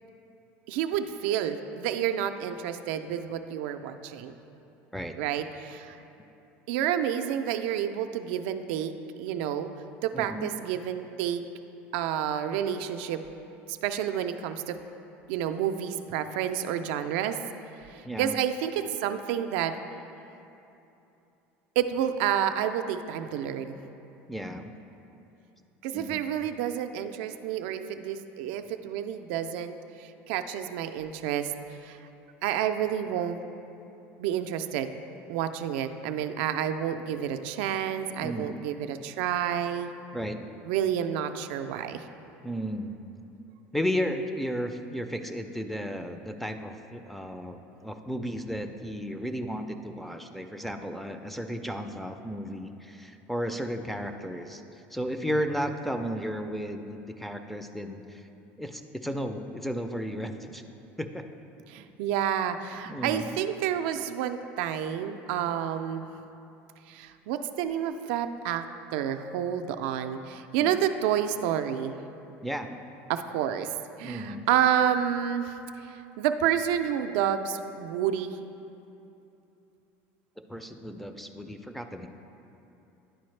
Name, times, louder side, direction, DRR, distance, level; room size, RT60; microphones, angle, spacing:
voice 1, 0.7-4.3 5.2-6.0 6.7-8.9 9.2-9.7 10.0-11.4 11.9-13.2 13.7-14.8 15.3-17.4 17.9-19.7 21.8-23.8 25.8-32.0 32.4-33.4 34.2-34.9 35.3-39.9 40.6-42.1 61.7-66.1 66.9-68.7 68.9-72.0 73.1-73.7 74.0-78.5, right 9 dB, 80° right, 8 dB, 0.3 m, -29 dB
voice 2, 10.1-10.5 18.0-18.4 24.3-24.7 25.9-26.2 38.2-38.6 40.1-40.4 42.4-43.0 43.7-58.2 58.6-60.6 61.0-61.2 62.9-63.3 70.6-70.8 72.4-72.7 74.0-74.4 80.5-82.1, equal, 5° left, 7 dB, 0.3 m, -34 dB
10.5 x 4.2 x 3.2 m, 2.8 s
supercardioid pair, 115°, 6 cm